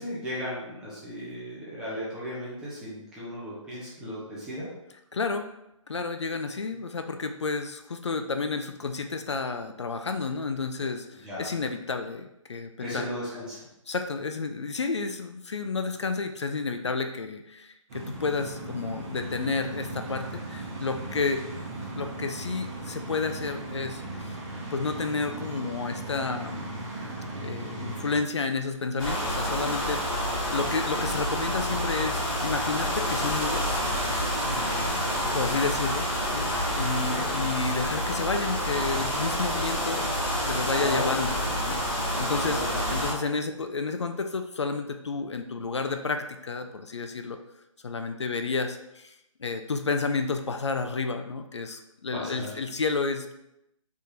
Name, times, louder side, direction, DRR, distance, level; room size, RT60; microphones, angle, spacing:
voice 1, 0.0-4.7 11.2-11.5 12.8-13.6 34.5-34.9 37.0-37.3 40.7-41.1 42.4-42.8 52.1-52.5, left 1 dB, 5° right, -8 dB, 0.4 m, -35 dB
voice 2, 5.1-5.5 5.9-13.0 13.9-21.4 22.0-24.4 24.7-26.8 27.4-33.8 35.3-40.0 40.4-41.4 41.6-41.8 42.2-42.6 42.9-47.4 47.8-49.1 49.4-53.3, left 4 dB, 55° left, 7 dB, 0.4 m, -31 dB
sound 1, 17.9-28.2, right 2 dB, 30° right, 1.0 m, -37 dB
sound 2, 29.0-43.1, equal, 10° left, 1.4 m, -28 dB
4.3 x 3.5 x 2.8 m, 0.85 s
figure-of-eight pair, 145°, 17 cm